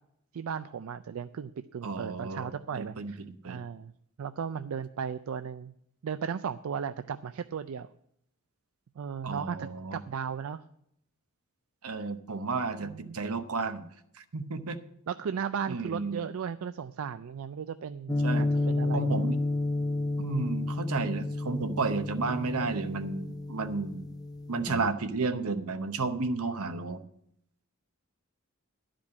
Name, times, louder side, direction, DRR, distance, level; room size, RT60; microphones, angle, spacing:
voice 1, 0.3-3.9 4.2-5.7 6.0-7.9 9.0-10.6 12.0-12.1 12.8-13.2 15.1-19.3, right 7 dB, 70° right, 11 dB, 0.4 m, -36 dB
voice 2, 1.8-2.5 2.7-3.6 9.2-10.0 11.8-13.9 14.3-14.8 15.7-16.2 18.2-18.5 18.9-19.4 20.2-24.1 24.5-27.0, right 4 dB, 85° right, 9 dB, 0.8 m, -32 dB
sound 1, 18.1-24.9, left 2 dB, 15° left, 0.4 m, -31 dB
12.0 x 5.1 x 8.3 m, 0.74 s
head